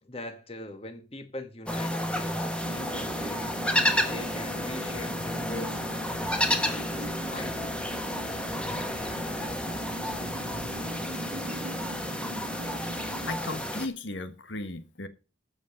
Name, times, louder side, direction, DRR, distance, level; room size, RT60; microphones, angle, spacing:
voice 1, 0.0-3.5 4.0-7.0 7.3-7.6, left 2 dB, 30° left, 1.4 m, -42 dB
sound 1, 1.7-13.9, left 1 dB, 5° left, 1.5 m, -31 dB
sound 2, 2.6-13.4, right 2 dB, 75° right, 0.8 m, -42 dB
voice 2, 13.3-15.1, left 2 dB, 80° left, 1.4 m, -36 dB
14.5 x 5.2 x 6.5 m
head